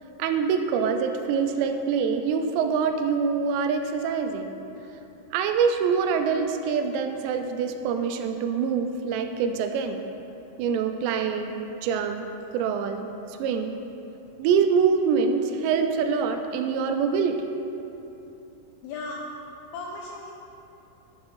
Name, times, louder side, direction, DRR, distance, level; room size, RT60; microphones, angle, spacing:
voice 1, 0.2-4.5 5.3-10.1 10.6-12.3 12.5-13.8 14.4-17.4, right 6 dB, 85° right, 6 dB, 2.8 m, -25 dB
voice 2, 18.8-19.3 19.7-20.3, left 3 dB, 80° left, 0 dB, 2.3 m, -35 dB
12.0 x 7.3 x 3.1 m, 2.9 s
omnidirectional pair, 5.0 m